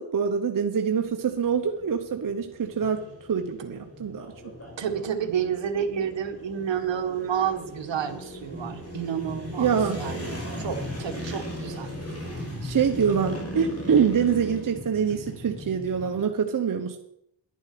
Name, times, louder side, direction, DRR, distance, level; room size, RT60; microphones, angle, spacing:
voice 1, 0.0-3.0 3.3-4.3 9.6-10.1 12.6-17.0, right 7 dB, 40° right, 4 dB, 1.1 m, -25 dB
sound 1, 1.0-16.2, equal, 30° left, 5.4 m, -37 dB
voice 2, 4.8-9.7 9.9-11.9, right 8 dB, 65° right, 6 dB, 1.7 m, -30 dB
10.5 x 10.5 x 6.1 m, 0.75 s
cardioid pair, 85°, 48 cm